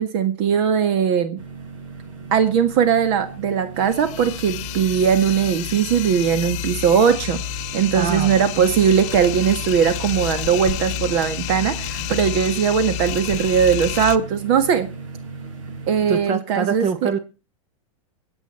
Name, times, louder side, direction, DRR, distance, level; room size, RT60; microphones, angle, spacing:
voice 1, 0.0-1.4 2.3-7.4 7.7-14.9 15.9-17.1, right 7 dB, 55° right, 9 dB, 1.7 m, -19 dB
sound 1, 1.4-16.2, right 3 dB, 75° right, 5.7 m, -37 dB
sound 2, 3.8-14.2, left 14 dB, 45° left, 1.2 m, -30 dB
voice 2, 7.9-8.3 16.1-17.2, right 6 dB, 40° right, 11 dB, 2.0 m, -24 dB
24.0 x 9.0 x 4.5 m, 0.33 s
supercardioid pair, 130°, 17 cm